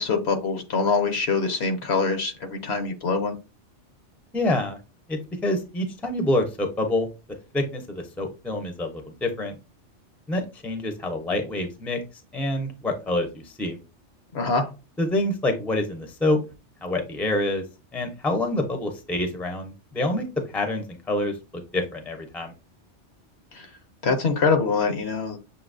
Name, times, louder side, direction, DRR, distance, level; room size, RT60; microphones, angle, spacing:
voice 1, 0.0-3.4 14.3-14.7 23.5-23.7 24.0-25.4, left 4 dB, 60° left, 6 dB, 1.1 m, -24 dB
voice 2, 4.3-4.8 5.1-7.1 7.5-9.5 10.3-12.0 12.3-13.8 15.0-16.4 16.8-17.6 17.9-20.3 20.5-22.5, left 1 dB, ahead, 6 dB, 0.6 m, -27 dB
6.9 x 2.8 x 2.6 m, 0.29 s
omnidirectional pair, 1.2 m